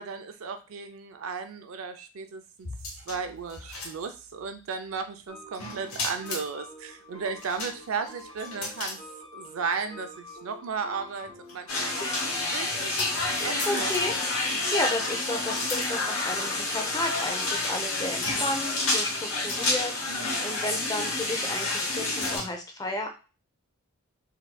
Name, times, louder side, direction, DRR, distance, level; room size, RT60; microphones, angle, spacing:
voice 1, 0.0-2.7 3.1-9.0 9.3-13.0 13.4-13.9 14.5-14.7 20.1-20.4, right 5 dB, 65° right, 7 dB, 0.4 m, -35 dB
sound 1, 2.6-4.4 5.5-6.5 7.4-9.0 9.4-9.5 11.1-14.6 15.4-15.9 16.7-16.8 17.4-17.7 18.2-18.8 19.5-19.9 20.7-20.9 21.6-22.5, left 3 dB, 90° left, 0.9 m, -38 dB
sound 2, 5.3-20.0, left 1 dB, 35° right, 0.8 m, -47 dB
sound 3, 11.7-22.4, left 2 dB, 70° left, 1.0 m, -29 dB
voice 2, 13.3-14.1 14.4-23.1, left 2 dB, 15° left, 2 dB, 0.6 m, -33 dB
3.1 x 2.9 x 2.2 m, 0.31 s
head